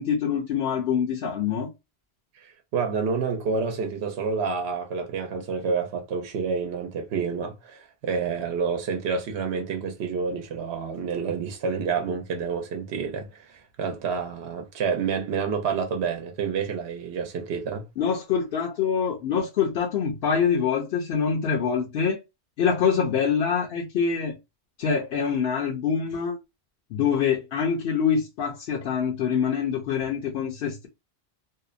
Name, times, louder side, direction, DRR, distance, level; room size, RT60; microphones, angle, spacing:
voice 1, 0.0-1.7 18.0-22.2 22.6-24.3 24.8-26.4 26.9-30.9, left 7 dB, 65° left, 0.8 m, -25 dB
voice 2, 2.3-17.9, right 5 dB, 75° right, 0.9 m, -29 dB
2.7 x 2.0 x 2.4 m
omnidirectional pair, 1.1 m